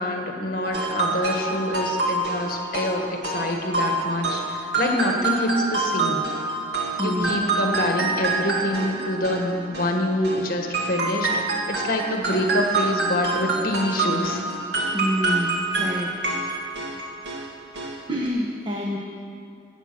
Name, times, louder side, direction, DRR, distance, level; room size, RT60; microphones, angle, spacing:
voice 1, 0.0-6.3 7.0-14.4, left 1 dB, 50° left, 2 dB, 1.6 m, -26 dB
sound 1, 0.6-10.4 10.7-17.5 17.7-18.0 18.3-18.4, right 3 dB, 60° right, 1.8 m, -26 dB
voice 2, 7.0-7.3 14.9-16.1 18.1-19.0, equal, 25° right, -2 dB, 1.0 m, -27 dB
15.5 x 9.0 x 6.1 m, 2.6 s
head